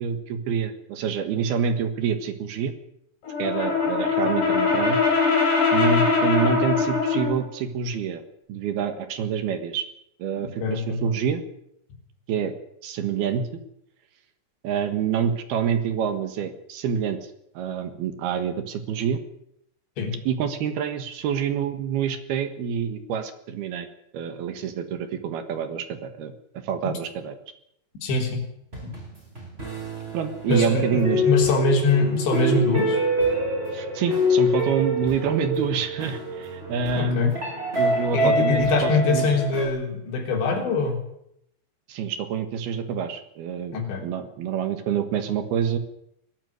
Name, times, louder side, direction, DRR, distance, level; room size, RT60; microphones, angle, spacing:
voice 1, 0.0-2.7 3.4-5.0 5.7-8.2 8.5-9.9 10.2-11.4 12.3-12.5 12.8-13.5 14.6-19.2 20.3-23.9 24.1-26.3 26.6-27.3 30.1-31.2 33.7-37.4 37.8-39.3 41.9-45.8, right 7 dB, 65° right, 9 dB, 3.3 m, -27 dB
Brass instrument, 3.2-7.4, left 4 dB, 50° left, 7.9 m, -22 dB
voice 2, 10.6-11.1 20.0-20.1 28.0-28.5 28.8-29.0 30.5-33.0 37.0-37.3 38.1-41.0 43.7-44.0, left 3 dB, 75° left, 2 dB, 6.1 m, -23 dB
sound 1, 28.7-39.7, left 1 dB, 10° right, 8.1 m, -26 dB
21.0 x 13.5 x 9.6 m, 0.76 s
omnidirectional pair, 5.2 m